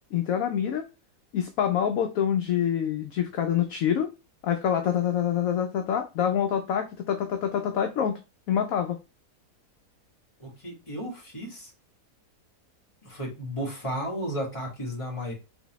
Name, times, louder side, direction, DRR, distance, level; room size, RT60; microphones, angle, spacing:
voice 1, 0.1-0.9 1.3-4.1 4.4-8.2 8.5-9.0, left 9 dB, 70° left, 0.9 m, -26 dB
voice 2, 10.4-11.7 13.0-15.3, equal, 20° left, 1.6 m, -34 dB
4.1 x 3.5 x 3.0 m
omnidirectional pair, 1.7 m